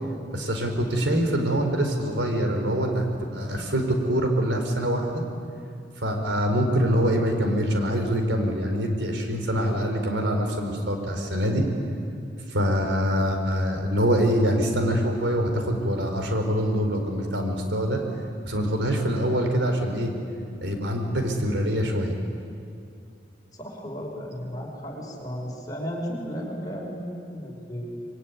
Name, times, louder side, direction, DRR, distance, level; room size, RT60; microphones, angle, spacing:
voice 1, 0.3-3.1 3.3-5.2 6.0-11.7 12.5-18.0 18.4-20.1 20.6-22.1, equal, 85° right, 4 dB, 4.3 m, -24 dB
voice 2, 23.5-28.0, equal, 20° left, -1 dB, 5.3 m, -34 dB
26.0 x 23.0 x 9.6 m, 2.5 s
head